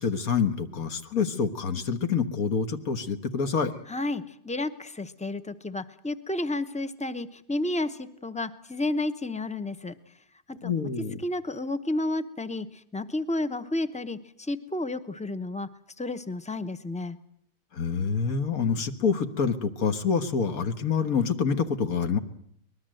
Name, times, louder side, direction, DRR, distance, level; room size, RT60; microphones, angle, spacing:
voice 1, 0.0-3.7 10.6-11.2 17.8-22.2, left 6 dB, 60° left, 8 dB, 1.8 m, -27 dB
voice 2, 3.9-9.9 10.6-10.7 11.2-12.7 12.9-15.7 16.0-17.2, left 2 dB, 10° left, 12 dB, 0.4 m, -31 dB
24.0 x 20.0 x 7.7 m, 0.69 s
omnidirectional pair, 1.7 m